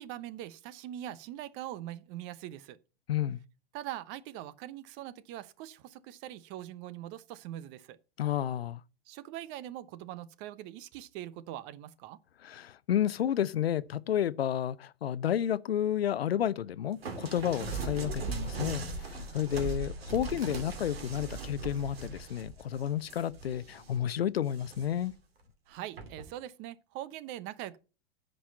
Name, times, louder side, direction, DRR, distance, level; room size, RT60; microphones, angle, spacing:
voice 1, 0.0-2.8 3.7-8.0 9.1-12.2 25.7-27.8, right 13 dB, 35° right, 0.8 m, -42 dB
voice 2, 3.1-3.4 8.2-8.8 12.4-25.1, left 10 dB, 75° left, 0.7 m, -31 dB
sound 1, 17.0-24.0 24.5-25.1 26.0-26.3, right 4 dB, 70° right, 2.6 m, -39 dB
9.9 x 5.5 x 7.6 m
figure-of-eight pair, 100°, 31 cm